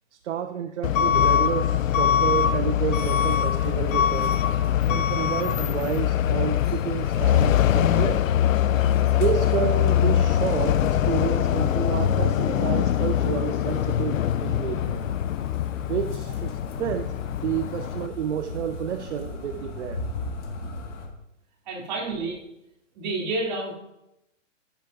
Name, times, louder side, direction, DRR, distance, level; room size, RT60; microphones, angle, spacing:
voice 1, 0.1-4.4 4.9-8.2 9.2-15.1 15.8-20.1, right 9 dB, 65° right, 9 dB, 0.6 m, -30 dB
Truck / Alarm, 0.8-18.1, left 10 dB, 90° left, 0.6 m, -23 dB
sound 1, 2.9-21.1, left 3 dB, 65° left, 2.0 m, -40 dB
Musical instrument, 7.6-17.4, left 2 dB, ahead, 1.3 m, -45 dB
voice 2, 21.6-22.4 22.9-23.7, right 2 dB, 35° right, -3 dB, 3.2 m, -30 dB
10.5 x 10.5 x 2.7 m, 0.87 s
hypercardioid pair, 170°, 38 cm